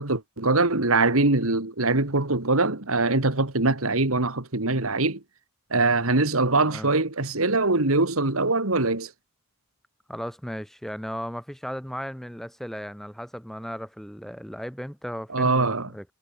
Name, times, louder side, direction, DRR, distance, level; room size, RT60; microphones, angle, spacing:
voice 1, 0.0-5.2 5.7-9.1 15.3-15.9, right 2 dB, 75° right, 2.6 m, -23 dB
voice 2, 10.1-16.1, equal, ahead, 7.0 m, -36 dB
head